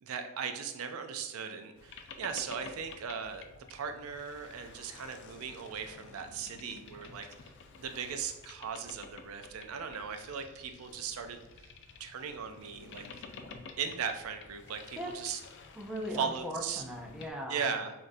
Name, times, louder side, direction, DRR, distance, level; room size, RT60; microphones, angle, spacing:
voice 1, 0.0-7.3 7.8-11.4 12.0-13.0 13.8-15.4 16.2-16.8 17.5-17.9, right 6 dB, 75° right, 6 dB, 0.4 m, -38 dB
Boat Water vehicle, 1.8-17.3, left 4 dB, 55° left, 0.4 m, -51 dB
voice 2, 15.0-15.4 15.7-17.7, equal, 5° right, 0 dB, 0.5 m, -39 dB
5.8 x 2.5 x 2.6 m, 1.1 s
head